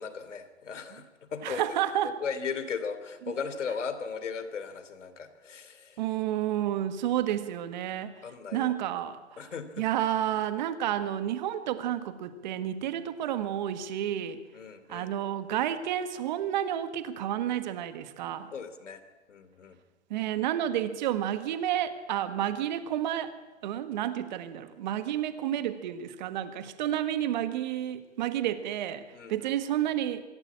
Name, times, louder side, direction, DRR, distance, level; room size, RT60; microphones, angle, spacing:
voice 1, 0.0-1.6 2.0-6.0 8.2-8.9 9.4-9.9 14.5-15.1 18.5-19.0 19.3-19.8 29.1-29.5, left 6 dB, 80° left, 11 dB, 3.2 m, -37 dB
voice 2, 1.4-2.1 6.0-8.1 8.5-9.4 9.8-14.4 14.9-18.5 20.1-23.3 23.6-29.0 29.3-30.2, right 11 dB, 40° right, 10 dB, 1.7 m, -30 dB
25.0 x 14.5 x 8.7 m, 1.2 s
hypercardioid pair, 155°, 36 cm